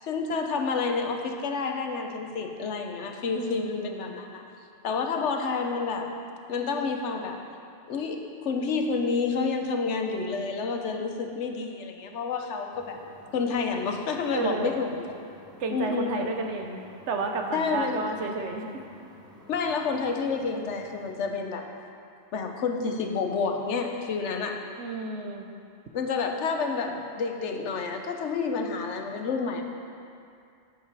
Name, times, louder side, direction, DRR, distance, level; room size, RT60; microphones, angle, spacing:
voice 1, 0.0-4.4 4.8-6.1 6.5-7.4 7.9-13.0 13.3-15.1 15.7-16.5 17.5-18.0 19.5-21.6 22.3-24.6 25.9-29.6, left 4 dB, 75° left, 4 dB, 1.1 m, -29 dB
voice 2, 3.3-4.1 14.3-14.8 15.6-18.7 24.8-25.5, right 3 dB, 75° right, 3 dB, 1.1 m, -32 dB
sound 1, 12.7-21.1, equal, 5° right, 1.3 m, -52 dB
8.7 x 7.4 x 4.8 m, 2.4 s
omnidirectional pair, 1.2 m